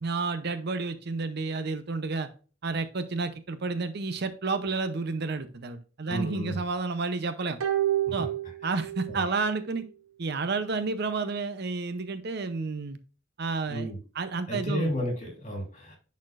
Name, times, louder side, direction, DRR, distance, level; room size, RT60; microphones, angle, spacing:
voice 1, 0.0-2.3 2.6-7.6 8.1-8.3 8.6-9.8 10.2-13.0 13.4-13.9 14.1-14.9, right 4 dB, 55° right, 10 dB, 0.6 m, -30 dB
voice 2, 6.1-6.6 8.1-8.2 9.1-9.2 13.7-14.0 14.5-16.1, equal, 35° left, 1 dB, 2.9 m, -32 dB
sound 1, 7.6-9.2 9.5-9.6, right 12 dB, 90° right, 0.7 m, -29 dB
10.5 x 4.2 x 2.5 m, 0.37 s
head